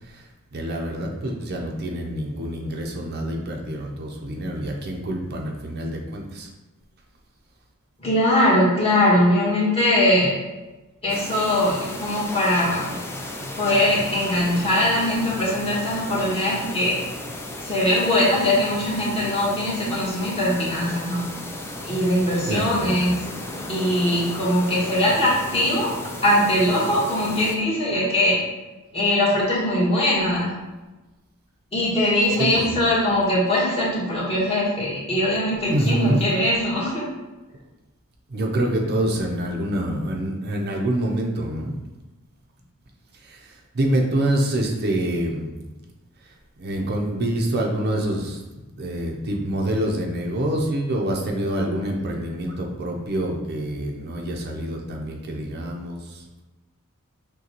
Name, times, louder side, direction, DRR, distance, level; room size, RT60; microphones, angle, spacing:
voice 1, 0.0-6.5 22.5-23.0 32.4-32.8 35.7-36.2 38.3-41.8 43.1-45.5 46.2-48.4 48.8-56.3, right 1 dB, 45° right, 0 dB, 0.5 m, -26 dB
voice 2, 8.0-10.3 11.0-12.9 13.5-17.0 17.6-21.2 21.8-23.1 23.7-25.9 26.2-28.4 28.9-30.5 31.7-37.0, left 1 dB, 25° left, -7 dB, 1.3 m, -21 dB
sound 1, 11.1-27.6, left 1 dB, 10° left, 0.3 m, -34 dB
6.4 x 2.2 x 2.9 m, 1.1 s
head